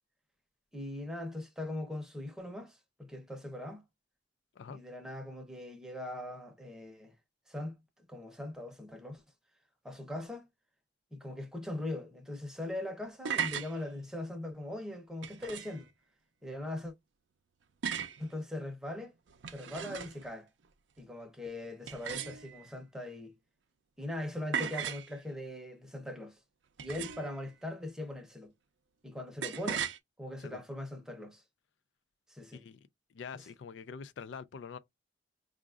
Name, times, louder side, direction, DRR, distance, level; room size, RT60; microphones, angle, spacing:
voice 1, 0.7-3.8 4.7-7.1 7.5-9.2 9.8-10.5 11.1-15.9 16.4-16.9 18.2-19.1 19.5-20.5 21.0-23.3 24.0-26.4 26.8-28.5 29.0-29.9 30.2-31.4 32.3-32.6, left 1 dB, 5° right, 0.7 m, -40 dB
sound 1, 13.0-13.7 15.2-15.8 17.8-18.2 19.3-20.3 21.9-22.7 24.5-25.1 26.8-27.4 29.4-30.0, right 7 dB, 65° right, 0.5 m, -36 dB
voice 2, 33.1-34.8, left 6 dB, 70° left, 0.4 m, -45 dB
4.8 x 2.5 x 2.4 m
head